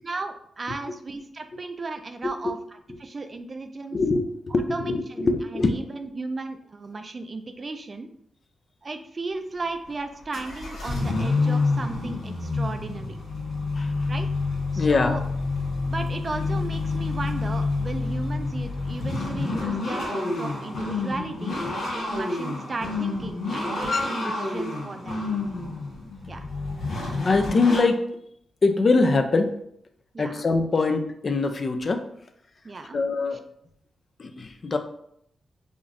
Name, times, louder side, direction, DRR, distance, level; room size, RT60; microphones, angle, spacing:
voice 1, 0.0-2.6 3.0-4.0 4.7-8.1 8.8-13.2 14.1-14.3 14.7-15.2 15.9-21.6 21.9-25.2 26.3-26.5 30.1-30.5 32.6-33.0 33.3-33.4, right 3 dB, 40° right, 8 dB, 0.4 m, -35 dB
voice 2, 2.2-2.6 3.9-5.8 13.7-14.1 14.8-15.2 23.9-24.4 27.2-28.1 28.6-29.6 30.2-32.1 32.9-33.4 34.2-34.8, left 3 dB, 45° left, 6 dB, 0.4 m, -23 dB
sound 1, 9.6-9.9 10.3-27.8, left 3 dB, 85° left, 1.2 m, -28 dB
4.9 x 2.6 x 2.5 m, 0.72 s
cardioid pair, 80°, 0 cm